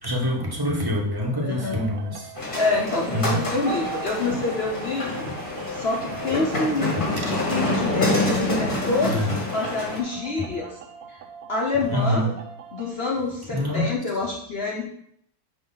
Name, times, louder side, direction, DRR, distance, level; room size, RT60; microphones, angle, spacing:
voice 1, 0.0-2.3 3.1-3.4 7.1-7.3 9.0-9.4 11.9-12.3 13.5-13.9, equal, 15° right, -2 dB, 0.7 m, -25 dB
voice 2, 1.4-1.8 2.6-5.3 5.7-10.8 11.1-11.2 11.5-12.3 12.7-14.9, left 3 dB, 60° left, -1 dB, 0.6 m, -27 dB
sound 1, 1.6-12.9, right 9 dB, 70° right, 0.9 m, -41 dB
sound 2, 2.4-10.0, left 2 dB, 25° left, 1.9 m, -27 dB
9.5 x 3.2 x 3.9 m, 0.70 s
omnidirectional pair, 2.1 m